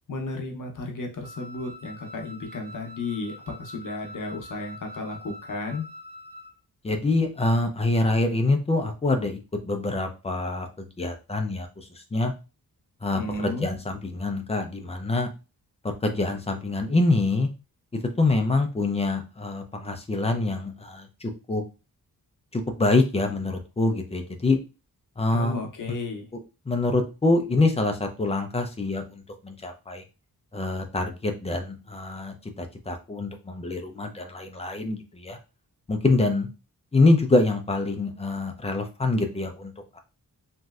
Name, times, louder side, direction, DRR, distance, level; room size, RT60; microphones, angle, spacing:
voice 1, 0.1-5.8 13.2-13.7 25.3-26.3 34.2-34.4, left 3 dB, 55° left, 2 dB, 0.7 m, -33 dB
Wind instrument woodwind instrument, 1.2-6.6, left 1 dB, 55° right, 1.4 m, -44 dB
voice 2, 6.8-9.4 9.7-12.3 13.0-15.3 15.8-17.5 17.9-21.6 22.5-24.6 25.2-25.6 26.3-26.4 26.7-30.0 30.5-35.4 35.9-36.5 36.9-40.0, left 2 dB, 20° left, 4 dB, 0.3 m, -25 dB
3.0 x 2.6 x 2.3 m, 0.30 s
wide cardioid pair, 165°, 38 cm